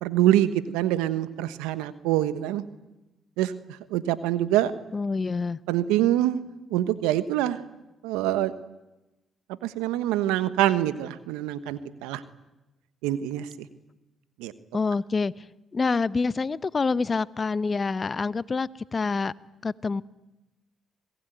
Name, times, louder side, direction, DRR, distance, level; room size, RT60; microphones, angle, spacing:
voice 1, 0.0-2.6 3.4-3.5 3.9-4.7 5.7-6.4 6.7-7.6 8.0-8.5 9.6-12.2 13.0-13.7 14.4-14.5, right 13 dB, 90° right, 13 dB, 1.2 m, -25 dB
voice 2, 4.9-5.6 14.7-15.4 15.7-19.3 19.6-20.0, left 4 dB, 40° left, 18 dB, 0.8 m, -27 dB
27.5 x 20.0 x 9.3 m, 1.0 s
supercardioid pair, 55°, 0 cm